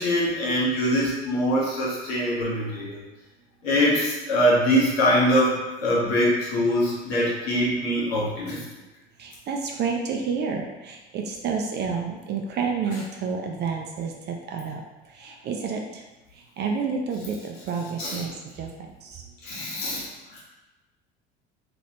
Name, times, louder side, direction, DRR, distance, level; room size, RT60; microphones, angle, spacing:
voice 1, 0.0-3.0 3.6-8.6 18.0-18.2 19.4-20.4, equal, 65° left, -5 dB, 1.2 m, -23 dB
voice 2, 9.2-14.8 15.1-16.0 16.3-19.2, right 5 dB, 30° right, 2 dB, 0.4 m, -30 dB
3.0 x 2.9 x 2.9 m, 1.1 s
figure-of-eight pair, 60°, 33 cm